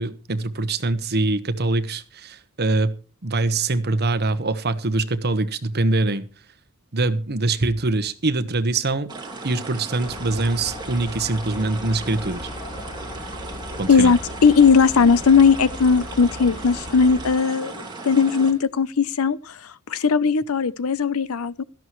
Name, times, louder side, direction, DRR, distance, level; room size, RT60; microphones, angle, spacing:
voice 1, 0.0-2.9 3.2-6.3 6.9-9.1 9.4-12.5 13.8-14.1, right 2 dB, 50° right, 1.1 m, -23 dB
sound 1, 9.1-18.5, right 3 dB, 20° right, 2.8 m, -36 dB
sound 2, 10.0-17.3, left 2 dB, 35° left, 1.1 m, -38 dB
voice 2, 13.9-19.6 19.9-21.6, left 5 dB, 75° left, 0.6 m, -18 dB
17.0 x 13.0 x 3.1 m
head